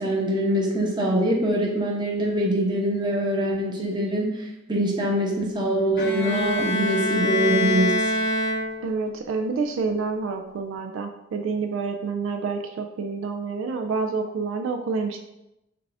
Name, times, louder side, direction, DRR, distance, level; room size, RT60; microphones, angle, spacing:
voice 1, 0.0-7.9, right 1 dB, 25° right, -3 dB, 0.9 m, -24 dB
Bowed string instrument, 6.0-9.1, left 1 dB, 55° left, 0.5 m, -25 dB
voice 2, 8.8-15.2, right 4 dB, 75° right, 5 dB, 0.4 m, -28 dB
5.7 x 2.4 x 3.4 m, 0.90 s
head